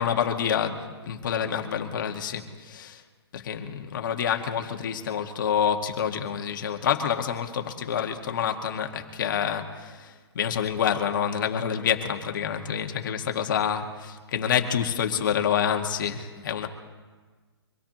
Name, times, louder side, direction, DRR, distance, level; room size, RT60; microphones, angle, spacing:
voice 1, 0.0-3.0 3.3-16.7, left 8 dB, 50° left, 4 dB, 1.8 m, -27 dB
25.0 x 17.0 x 3.0 m, 1.4 s
hypercardioid pair, 160°, 14 cm